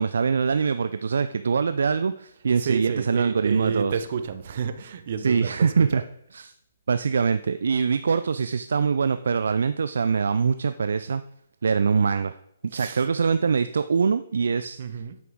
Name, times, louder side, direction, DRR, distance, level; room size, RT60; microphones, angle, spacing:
voice 1, 0.0-3.9 5.2-6.0 6.3-6.5 6.9-11.2 11.6-12.3 12.7-14.8, right 5 dB, 70° right, 11 dB, 0.3 m, -23 dB
voice 2, 2.6-6.0 12.7-13.0 14.8-15.2, right 6 dB, 55° right, 9 dB, 0.8 m, -31 dB
8.7 x 6.0 x 3.7 m, 0.75 s
figure-of-eight pair, 135°, 0 cm